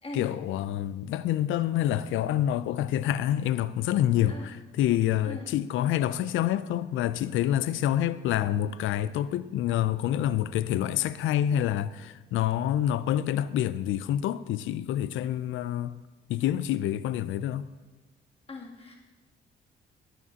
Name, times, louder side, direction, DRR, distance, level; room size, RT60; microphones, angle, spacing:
voice 1, 0.1-16.0 16.3-17.7, left 11 dB, 80° left, 0.4 m, -27 dB
voice 2, 18.5-19.0, left 2 dB, 30° left, 2.7 m, -40 dB
18.0 x 9.8 x 2.9 m
cardioid pair, 90°, 20 cm